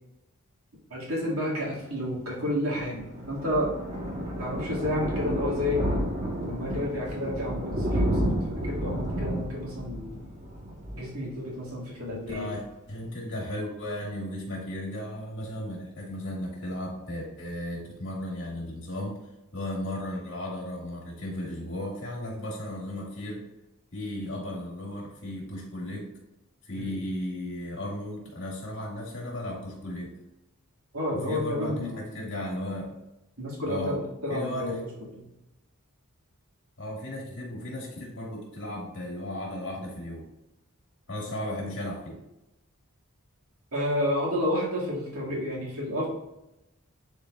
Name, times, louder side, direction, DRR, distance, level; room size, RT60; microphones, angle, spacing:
voice 1, 0.9-3.7 4.4-5.9 6.4-10.2 10.9-12.5 26.7-27.0 30.9-32.0 33.4-34.8 35.1-35.2 43.7-46.1, left 1 dB, 75° right, -5 dB, 2.2 m, -30 dB
Thunder, 2.4-11.8 12.1-12.4 12.7-12.8 13.0-13.1, equal, 30° right, 1.3 m, -31 dB
voice 2, 12.1-19.2 19.5-23.5 23.9-26.1 26.6-30.1 31.1-33.0 33.6-34.0 34.3-34.8 36.8-40.2 41.1-42.2, left 1 dB, 60° left, -2 dB, 2.1 m, -35 dB
10.5 x 4.4 x 2.4 m, 0.93 s
head